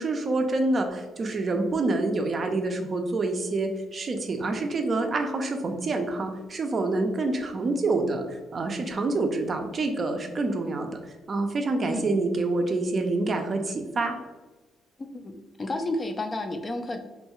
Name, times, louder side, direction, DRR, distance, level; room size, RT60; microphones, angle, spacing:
voice 1, 0.0-14.2, right 2 dB, 40° right, 5 dB, 0.4 m, -27 dB
voice 2, 15.0-15.3 15.6-17.0, left 2 dB, 30° left, 6 dB, 0.3 m, -31 dB
2.7 x 2.2 x 2.9 m, 1.2 s
cardioid pair, 90°, 0 cm